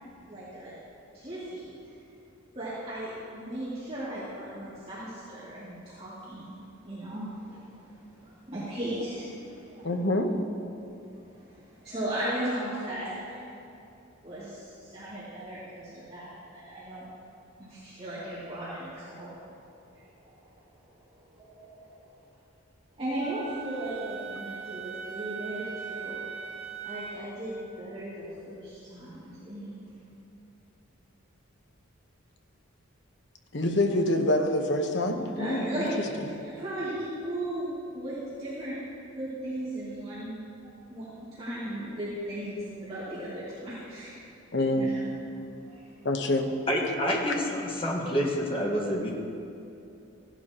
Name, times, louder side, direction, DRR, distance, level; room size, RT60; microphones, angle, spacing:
voice 1, 0.3-0.7 1.1-1.6 2.5-6.5 6.8-9.9 11.3-13.4 14.2-17.0 17.6-19.4 19.9-20.3 21.3-22.0 23.0-26.2 26.8-29.8 35.4-37.7 37.9-38.8 39.1-40.4 40.9-44.1 44.7-45.1 45.6-45.8, right 1 dB, 30° right, -12 dB, 2.5 m, -37 dB
voice 2, 9.8-10.4 33.5-35.9 42.6-42.7 44.5-44.9 46.0-46.5, left 1 dB, 55° left, 5 dB, 0.9 m, -26 dB
Wind instrument woodwind instrument, 23.2-27.3, right 6 dB, 50° right, 2.2 m, -40 dB
voice 3, 46.7-49.1, equal, 25° left, -2 dB, 1.5 m, -28 dB
16.0 x 11.0 x 3.0 m, 2.8 s
head